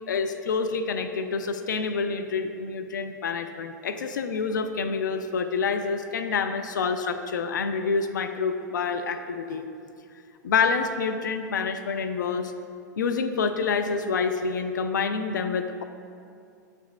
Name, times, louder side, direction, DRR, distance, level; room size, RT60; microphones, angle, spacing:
voice 1, 0.1-9.7 10.4-12.5 13.0-15.8, left 5 dB, 85° left, 8 dB, 0.4 m, -27 dB
8.0 x 6.6 x 2.3 m, 2.4 s
hypercardioid pair, 110°, 10 cm